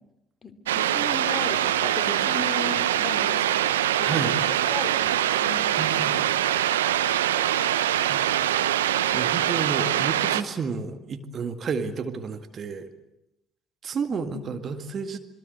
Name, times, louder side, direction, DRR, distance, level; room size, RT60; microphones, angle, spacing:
voice 1, 0.4-5.7 14.1-14.4, left 4 dB, 30° left, 9 dB, 2.9 m, -37 dB
sound 1, 0.7-10.4, right 11 dB, 80° right, 0.9 m, -23 dB
voice 2, 4.0-4.4 5.8-6.5 8.1-8.7 9.1-12.9 13.8-15.2, right 5 dB, 45° right, 8 dB, 2.0 m, -31 dB
27.5 x 22.0 x 8.1 m, 0.87 s
figure-of-eight pair, 55°, 0 cm